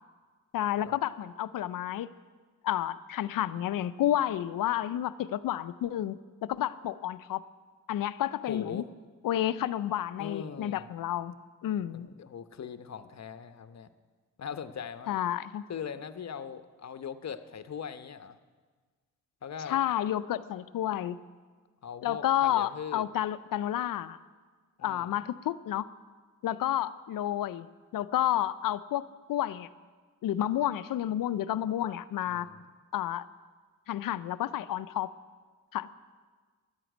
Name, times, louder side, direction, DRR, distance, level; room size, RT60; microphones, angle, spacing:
voice 1, 0.5-2.1 2.6-7.4 7.9-8.8 9.2-11.3 11.6-12.1 15.1-15.6 19.7-21.2 22.0-24.2 24.8-25.9 26.4-27.7 27.9-29.7 30.2-32.5 32.9-33.3 33.9-35.1 35.7-35.9, left 12 dB, 70° left, 15 dB, 0.6 m, -30 dB
voice 2, 8.5-8.9 10.2-10.9 11.9-13.9 14.4-15.2 15.7-18.4 19.4-19.8 21.8-23.1 24.8-25.2 32.3-32.7, left 7 dB, 50° left, 11 dB, 0.9 m, -40 dB
11.0 x 9.0 x 9.1 m, 1.5 s
supercardioid pair, 50°, 35 cm